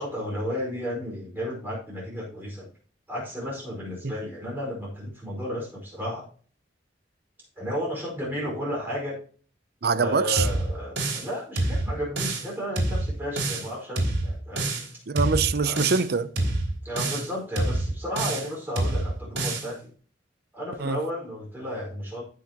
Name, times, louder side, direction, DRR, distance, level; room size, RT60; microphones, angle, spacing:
voice 1, 0.0-2.7 3.1-6.2 7.6-9.2 9.9-14.7 15.6-15.8 16.8-19.9 20.5-22.2, equal, 10° right, 4.8 m, -33 dB
voice 2, 9.8-10.5 15.1-16.3 20.8-21.0, right 5 dB, 60° right, 0.6 m, -24 dB
sound 1, 10.4-11.3 11.6-12.5 12.8-13.7 14.0-14.9 15.2-16.1 16.4-17.3 17.6-18.5 18.8-19.7, right 2 dB, 80° right, 3.2 m, -27 dB
14.5 x 6.5 x 2.9 m
head